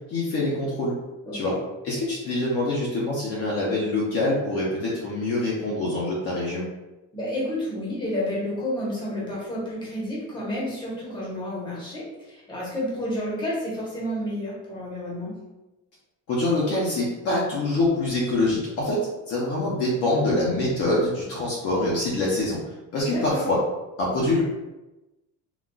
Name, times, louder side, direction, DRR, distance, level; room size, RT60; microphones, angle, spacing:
voice 1, 0.1-1.0 1.3-1.5 1.8-6.6 16.3-22.6 22.9-23.6 24.0-24.4, left 2 dB, 45° left, -5 dB, 0.7 m, -25 dB
voice 2, 7.1-15.3 23.1-23.4, left 1 dB, 15° left, -6 dB, 0.9 m, -30 dB
3.9 x 2.3 x 2.3 m, 1.0 s
cardioid pair, 160°, 33 cm